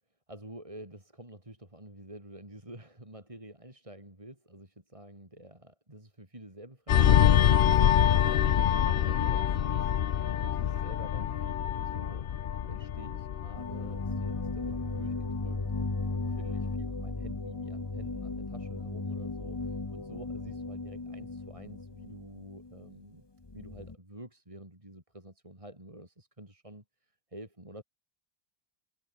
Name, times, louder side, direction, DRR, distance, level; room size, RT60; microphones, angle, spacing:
voice 1, 0.3-7.9 8.2-9.9 10.4-12.3 12.6-15.7 16.3-23.3 23.5-27.8, right 1 dB, 30° right, 4.9 m, -49 dB
sound 1, 6.9-15.9 16.3-16.5, left 9 dB, 60° left, 0.8 m, -26 dB
sound 2, 13.5-23.0 23.4-23.9, left 3 dB, 25° left, 1.1 m, -36 dB
omnidirectional pair, 1.1 m